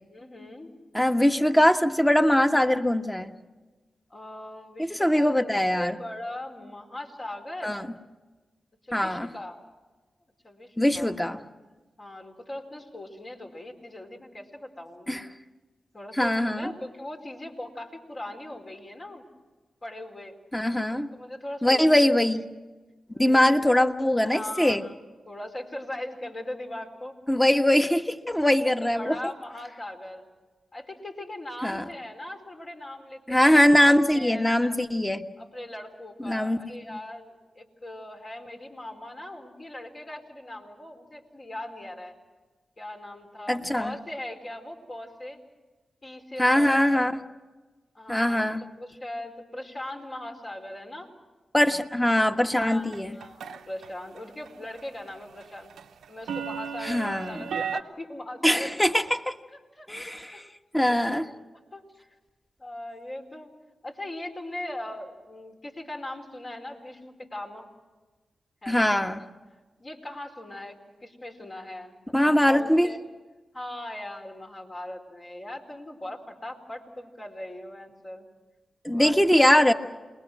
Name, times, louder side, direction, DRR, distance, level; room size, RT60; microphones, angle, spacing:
voice 1, 0.1-0.7 4.1-5.5 5.8-7.7 8.8-9.6 10.4-11.1 12.0-15.2 15.9-19.2 19.8-20.4 21.1-22.1 23.1-23.4 24.2-24.9 25.3-27.2 28.8-30.3 30.7-34.8 35.4-42.2 42.8-45.4 46.0-47.0 47.9-48.5 48.8-51.1 52.5-55.7 56.1-58.7 59.5-60.4 60.9-61.2 61.7-62.1 62.6-63.5 63.8-67.7 68.6-68.9 69.8-73.0 73.5-78.3 78.9-79.6, left 1 dB, 45° left, 2 dB, 4.4 m, -40 dB
voice 2, 0.9-3.3 4.9-5.9 7.6-7.9 8.9-9.3 10.8-11.4 15.1-15.2 16.2-16.7 20.5-21.1 21.6-22.5 23.2-24.8 27.3-29.2 31.6-31.8 33.3-35.2 36.2-36.6 43.5-43.9 46.4-47.1 48.1-48.7 51.5-53.1 56.8-57.4 58.4-59.2 59.9-60.2 60.7-61.2 68.7-69.2 72.1-72.9 78.8-79.7, left 1 dB, 10° left, 6 dB, 1.5 m, -22 dB
sound 1, 52.9-53.9 54.2-54.5 54.8-57.8, right 7 dB, 85° right, 0.7 m, -35 dB
28.5 x 20.5 x 6.2 m, 1.2 s
supercardioid pair, 40°, 0 cm